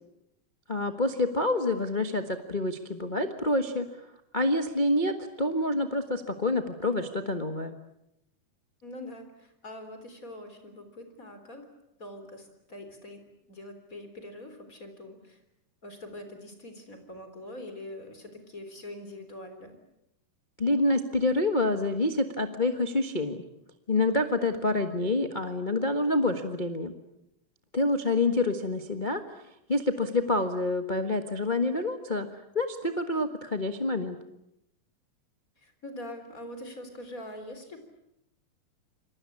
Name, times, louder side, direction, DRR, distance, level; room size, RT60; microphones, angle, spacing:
voice 1, 0.7-3.9 4.3-7.8 20.6-23.4 23.9-26.9 27.7-29.2 29.7-32.3 32.5-34.2, left 2 dB, 80° left, 7 dB, 0.4 m, -27 dB
voice 2, 8.8-11.7 12.0-13.2 13.5-15.4 15.8-19.8 28.1-28.4 35.6-37.8, left 1 dB, 25° left, 7 dB, 3.9 m, -43 dB
27.5 x 23.0 x 8.6 m, 0.82 s
omnidirectional pair, 3.6 m